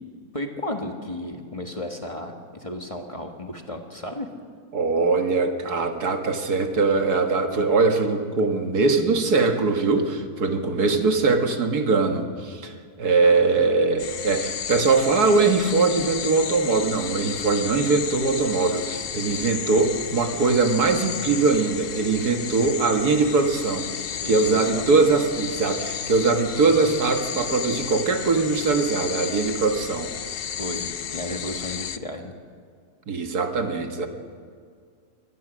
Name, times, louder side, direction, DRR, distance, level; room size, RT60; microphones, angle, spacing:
voice 1, 0.3-4.3 13.2-13.7 24.2-24.9 30.6-32.3, left 1 dB, 20° left, 3 dB, 1.5 m, -34 dB
voice 2, 4.7-30.1 33.1-34.1, right 3 dB, 80° right, 5 dB, 2.1 m, -22 dB
sound 1, 14.0-32.0, left 8 dB, 55° left, 0.7 m, -33 dB
24.5 x 18.0 x 6.3 m, 2.1 s
omnidirectional pair, 1.6 m